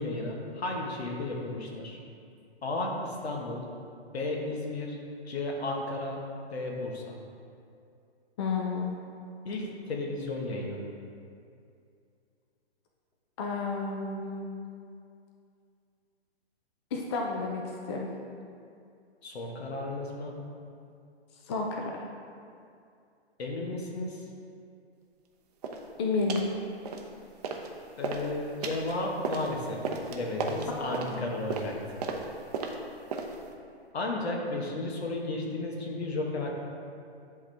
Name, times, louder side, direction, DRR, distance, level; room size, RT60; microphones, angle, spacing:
voice 1, 0.0-2.0 2.6-3.6 4.1-5.0 5.3-6.2 6.5-7.1 9.4-10.8 19.2-20.3 23.4-24.2 28.0-29.8 30.1-32.0 33.9-36.7, left 2 dB, 70° left, 0 dB, 1.5 m, -33 dB
voice 2, 8.4-9.0 13.4-14.5 16.9-18.1 21.4-22.0 26.0-26.5 30.7-31.4, left 4 dB, 25° left, 0 dB, 0.4 m, -31 dB
sound 1, 25.6-25.9 26.3-26.5 26.9-27.7 28.0-33.5, right 4 dB, 40° right, 0.7 m, -35 dB
10.5 x 3.8 x 3.4 m, 2.4 s
hypercardioid pair, 145°, 33 cm